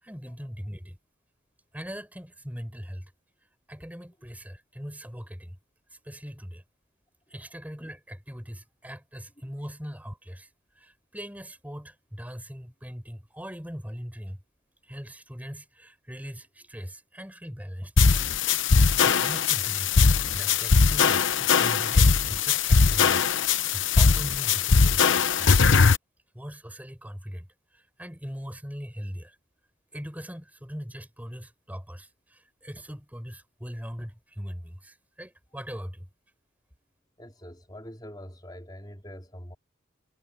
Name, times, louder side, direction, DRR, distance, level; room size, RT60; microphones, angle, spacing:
voice 1, 0.0-1.0 1.7-3.1 3.7-5.6 5.9-6.6 7.3-14.4 14.8-18.4 18.7-25.7 26.3-27.5 27.7-29.4 29.9-36.1, equal, 5° right, 5.6 m, -40 dB
sound 1, 18.0-26.0, left 5 dB, 65° left, 0.9 m, -20 dB
voice 2, 37.2-39.6, equal, 20° left, 4.3 m, -44 dB
head